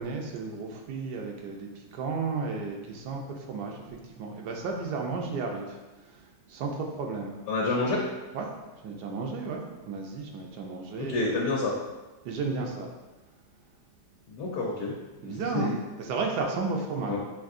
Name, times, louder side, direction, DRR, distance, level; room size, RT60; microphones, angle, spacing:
voice 1, 0.0-7.4 8.3-8.5 8.8-11.3 12.2-12.9 15.2-17.2, right 4 dB, 85° right, 1 dB, 1.2 m, -33 dB
voice 2, 7.5-8.1 11.0-11.7 14.3-14.9 15.2-15.7 17.1-17.2, left 3 dB, 80° left, -3 dB, 1.3 m, -28 dB
6.0 x 2.7 x 2.5 m, 1.1 s
omnidirectional pair, 1.8 m